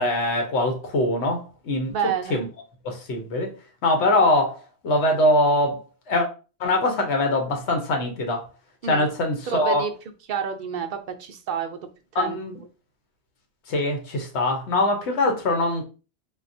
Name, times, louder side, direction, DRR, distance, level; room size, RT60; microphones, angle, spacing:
voice 1, 0.0-1.9 2.3-2.5 2.8-3.5 3.8-4.6 4.8-5.8 6.1-6.3 6.6-8.4 8.9-9.8 12.1-12.6 13.7-15.8, left 2 dB, 85° left, 1.1 m, -22 dB
voice 2, 1.9-2.4 8.8-9.1 9.5-9.9 10.3-11.8 12.1-12.4, right 7 dB, 60° right, 0.6 m, -29 dB
3.6 x 2.3 x 2.6 m
omnidirectional pair, 1.1 m